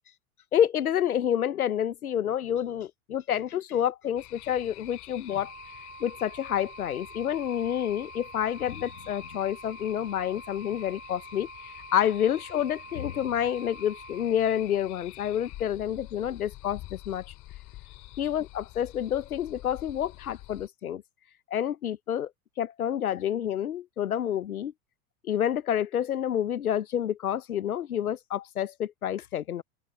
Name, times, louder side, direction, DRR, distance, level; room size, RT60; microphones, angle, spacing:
voice 1, 0.5-5.5 6.0-11.5 11.9-17.3 18.2-21.0 21.5-22.3 22.6-24.7 25.3-29.6, left 10 dB, 80° left, 0.9 m, -28 dB
sound 1, 4.2-20.7, left 18 dB, 40° left, 3.2 m, -47 dB
Wind instrument woodwind instrument, 5.3-14.2, right 4 dB, 15° right, 6.6 m, -47 dB
open air
hypercardioid pair, 95°, 43 cm